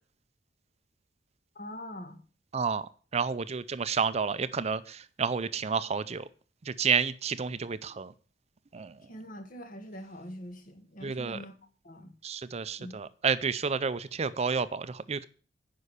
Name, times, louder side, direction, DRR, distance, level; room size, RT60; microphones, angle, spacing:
voice 1, 1.6-2.2 9.0-11.5 11.8-12.1 12.8-12.9, equal, 50° left, 2.0 m, -43 dB
voice 2, 2.5-2.9 3.1-6.3 6.7-8.1 8.7-8.9 11.0-11.4 12.2-15.3, right 6 dB, 35° right, 0.5 m, -30 dB
10.0 x 5.5 x 8.1 m
head